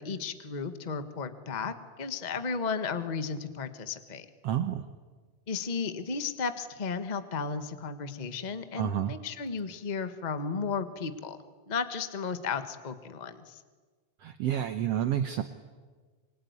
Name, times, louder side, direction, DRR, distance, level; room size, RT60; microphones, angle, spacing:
voice 1, 0.0-4.2 5.5-11.4 11.7-13.6, left 5 dB, 50° left, 9 dB, 0.5 m, -34 dB
voice 2, 4.4-4.8 8.8-9.1 14.2-15.4, right 10 dB, 65° right, 9 dB, 1.8 m, -29 dB
26.0 x 24.0 x 9.6 m, 1.4 s
omnidirectional pair, 3.5 m